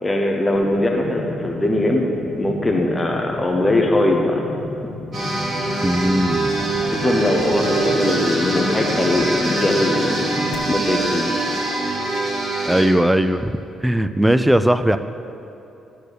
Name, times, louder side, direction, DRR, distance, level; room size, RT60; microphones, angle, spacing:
voice 1, 0.0-4.4 6.9-11.5, left 1 dB, 15° left, 1 dB, 0.9 m, -21 dB
sound 1, 0.5-10.5, left 2 dB, 75° left, 1.4 m, -33 dB
sound 2, 5.1-12.8, right 2 dB, 45° right, 2.4 m, -23 dB
voice 2, 5.8-6.5 12.6-13.5 13.8-15.0, equal, 5° right, 11 dB, 0.3 m, -18 dB
11.5 x 4.5 x 6.7 m, 2.8 s
cardioid pair, 90°, 0 cm